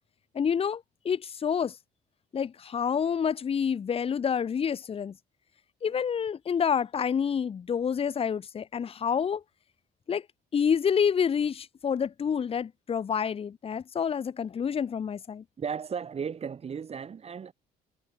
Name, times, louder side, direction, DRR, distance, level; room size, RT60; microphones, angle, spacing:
voice 1, 0.3-1.8 2.3-5.2 5.8-9.4 10.1-10.3 10.5-15.4, left 7 dB, 35° left, 1.2 m, -28 dB
voice 2, 15.6-17.5, right 6 dB, 35° right, 4.2 m, -35 dB
cardioid pair, 110°, 17 cm